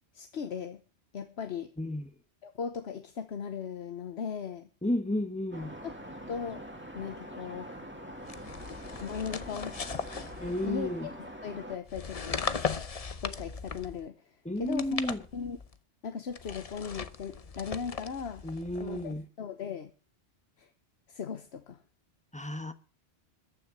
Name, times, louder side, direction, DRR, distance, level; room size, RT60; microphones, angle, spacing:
voice 1, 0.1-0.8 1.1-1.7 2.4-4.7 5.8-6.0 6.3-6.6 6.9-7.9 9.0-9.9 10.6-12.8 13.2-15.6 16.0-18.4 18.8-19.9 20.6-20.7 21.1-21.8, left 6 dB, 75° left, 1.2 m, -38 dB
voice 2, 1.8-2.1 4.8-5.8 10.4-11.1 14.4-15.2 18.4-19.2 22.3-22.7, left 1 dB, 5° left, 1.0 m, -32 dB
sound 1, 5.5-11.8, equal, 10° right, 2.2 m, -44 dB
sound 2, 8.2-11.0 11.8-14.1 14.6-15.7 16.3-19.2, left 5 dB, 35° left, 0.8 m, -38 dB
14.0 x 6.4 x 9.6 m
omnidirectional pair, 1.1 m